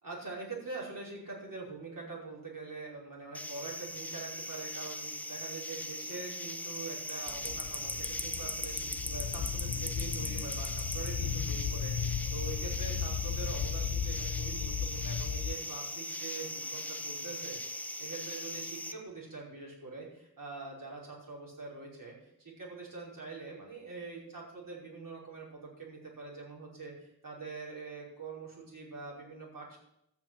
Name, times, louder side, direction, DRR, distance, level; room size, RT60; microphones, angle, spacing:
voice 1, 0.0-29.8, right 4 dB, 60° right, -4 dB, 5.4 m, -44 dB
sound 1, 3.3-18.9, left 1 dB, 5° left, 0.8 m, -39 dB
sound 2, 7.3-15.6, left 8 dB, 65° left, 0.6 m, -36 dB
13.0 x 5.9 x 9.1 m, 0.79 s
wide cardioid pair, 95°, 38 cm